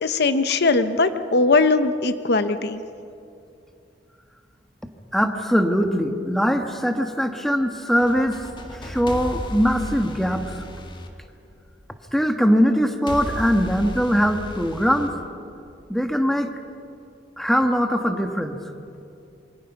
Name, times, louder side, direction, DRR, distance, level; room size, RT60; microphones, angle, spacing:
voice 1, 0.0-2.8, left 3 dB, 65° left, 10 dB, 0.9 m, -20 dB
voice 2, 5.1-8.4 8.8-10.6 12.1-15.1 15.9-16.5 17.4-18.6, equal, ahead, 5 dB, 1.4 m, -21 dB
sound 1, 7.8-11.9 13.1-15.9, equal, 25° left, 1.8 m, -35 dB
26.5 x 24.0 x 5.9 m, 2.5 s
head